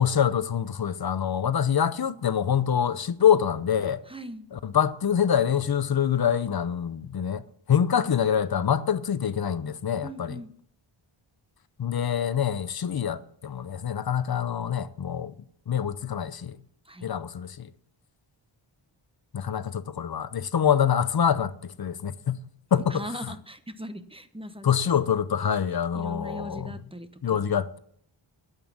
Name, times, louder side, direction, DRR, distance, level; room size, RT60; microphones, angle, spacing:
voice 1, 0.0-4.0 4.5-10.4 11.8-15.3 15.7-16.6 17.0-17.7 19.3-22.4 22.7-23.3 24.6-26.8 27.2-27.8, left 8 dB, 50° left, 0.7 m, -25 dB
voice 2, 4.1-4.5 10.0-10.5 16.9-17.1 22.9-24.7 25.9-27.5, equal, 10° right, 0.8 m, -39 dB
12.5 x 8.3 x 7.1 m
wide cardioid pair, 125°, 49 cm